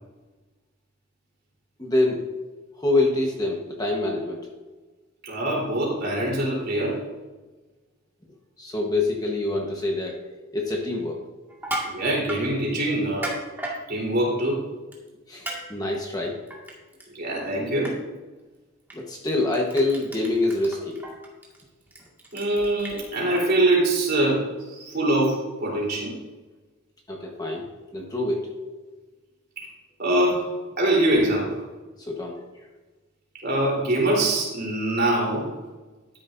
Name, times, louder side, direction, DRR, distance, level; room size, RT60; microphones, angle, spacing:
voice 1, 1.8-2.3 2.8-4.5 8.6-10.2 10.5-11.2 15.3-16.4 18.9-21.0 27.1-28.5 32.1-32.4, left 2 dB, 15° left, -1 dB, 1.2 m, -25 dB
voice 2, 5.2-7.0 11.8-13.3 13.9-14.6 17.2-18.0 22.3-24.4 24.7-26.1 30.0-30.5 30.8-31.6 33.4-35.5, right 1 dB, 45° right, -3 dB, 3.7 m, -23 dB
Crushing, 11.5-12.4 13.0-13.8 14.9-15.1 15.4-15.6 15.9-17.0 17.4-17.6 17.8-17.9 18.9-19.0 19.3-23.4, right 1 dB, 10° right, 1.9 m, -34 dB
12.5 x 10.5 x 2.6 m, 1.2 s
head